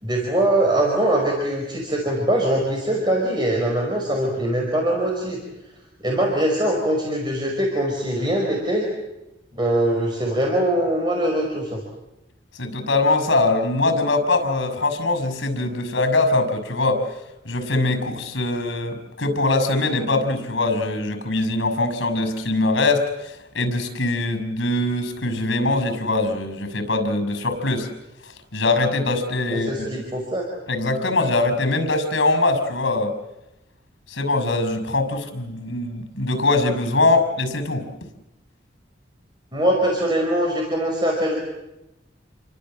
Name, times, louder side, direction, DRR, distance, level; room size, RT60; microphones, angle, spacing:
voice 1, 0.0-5.4 6.0-8.9 9.5-11.8 29.5-30.5 39.5-41.3, right 1 dB, 25° right, 0 dB, 5.2 m, -22 dB
voice 2, 12.6-17.0 17.4-27.9 28.5-29.7 30.7-33.1 34.1-37.8, left 2 dB, 70° left, 10 dB, 6.2 m, -22 dB
29.5 x 24.0 x 7.7 m, 0.94 s
head